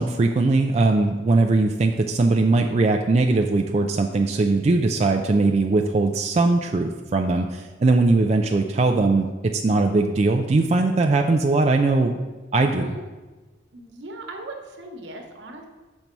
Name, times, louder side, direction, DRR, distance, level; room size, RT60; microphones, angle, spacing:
voice 1, 0.0-12.1 12.5-13.0, right 3 dB, 35° right, 3 dB, 0.3 m, -20 dB
voice 2, 12.8-13.1 13.7-15.7, right 2 dB, 75° right, 3 dB, 1.1 m, -39 dB
7.1 x 5.3 x 4.5 m, 1.3 s
head